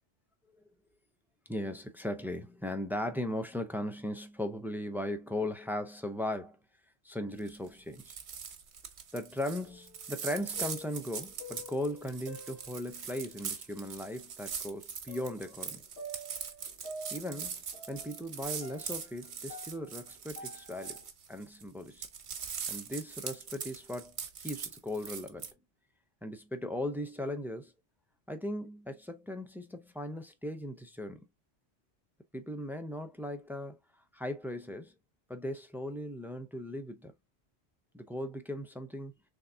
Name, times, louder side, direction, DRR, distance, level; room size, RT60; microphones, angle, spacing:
voice 1, 1.5-6.6 7.0-8.2 9.1-15.8 17.1-17.6 17.9-21.0 21.3-22.1 22.7-25.5 26.2-27.7 28.3-31.2 32.3-33.8 34.1-34.9 35.3-37.1 37.9-39.1, left 1 dB, 5° right, 0.3 m, -38 dB
sound 1, 7.4-7.7 7.9-21.6 21.9-25.5, right 6 dB, 90° right, 1.2 m, -42 dB
sound 2, 9.6-10.2 10.4-13.2 14.0-14.1 15.1-21.1, left 1 dB, 90° left, 1.7 m, -48 dB
3.8 x 3.4 x 2.7 m
omnidirectional pair, 1.1 m